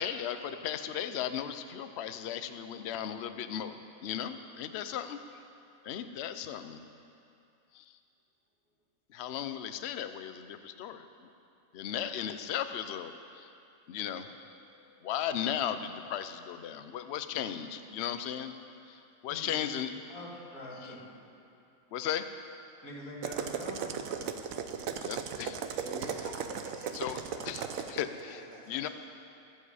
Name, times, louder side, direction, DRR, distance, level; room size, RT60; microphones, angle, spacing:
voice 1, 0.0-3.7 4.0-5.2 5.8-6.8 7.7-7.8 9.1-11.3 11.7-13.5 13.9-14.4 15.0-18.5 18.9-19.9 20.8-20.9 21.9-22.3 24.9-25.6 26.9-27.2 27.5-27.6 27.9-28.9, left 9 dB, 60° left, 10 dB, 0.8 m, -36 dB
voice 2, 19.3-19.7 20.1-21.2 22.8-24.7, equal, 85° left, -2 dB, 2.3 m, -45 dB
sound 1, 23.2-28.0, right 7 dB, 75° right, 1.1 m, -36 dB
voice 3, 25.8-26.9 27.3-28.9, right 1 dB, 60° right, -5 dB, 3.1 m, -46 dB
22.5 x 7.6 x 4.9 m, 2.6 s
omnidirectional pair, 1.5 m